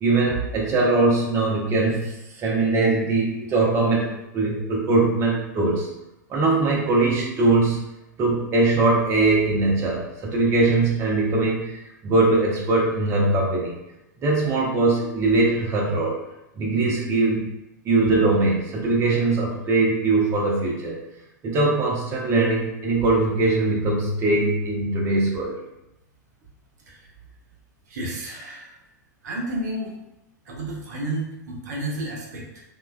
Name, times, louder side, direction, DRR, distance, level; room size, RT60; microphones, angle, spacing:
voice 1, 0.0-5.9 6.3-7.8 8.2-13.7 14.2-16.2 16.6-17.4 17.8-21.0 21.4-25.6, right 3 dB, 25° right, -2 dB, 0.5 m, -21 dB
voice 2, 27.9-28.7 29.2-30.0 30.5-32.6, right 1 dB, 65° right, -2 dB, 0.7 m, -31 dB
2.9 x 2.2 x 2.2 m, 0.91 s
figure-of-eight pair, 100°, 10 cm